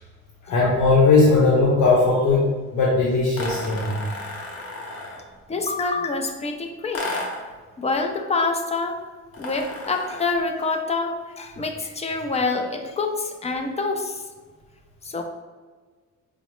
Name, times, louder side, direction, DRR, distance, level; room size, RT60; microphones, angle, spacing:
voice 1, 0.5-4.0, left 3 dB, 80° left, -4 dB, 0.8 m, -18 dB
sound 1, 3.3-5.3 6.9-7.5 9.3-10.4, left 2 dB, 50° left, 0.9 m, -33 dB
voice 2, 5.5-7.2 7.8-9.0 9.4-14.3 15.0-15.2, left 3 dB, 20° left, 4 dB, 0.4 m, -26 dB
4.9 x 2.0 x 3.1 m, 1.4 s
cardioid pair, 90°, 30 cm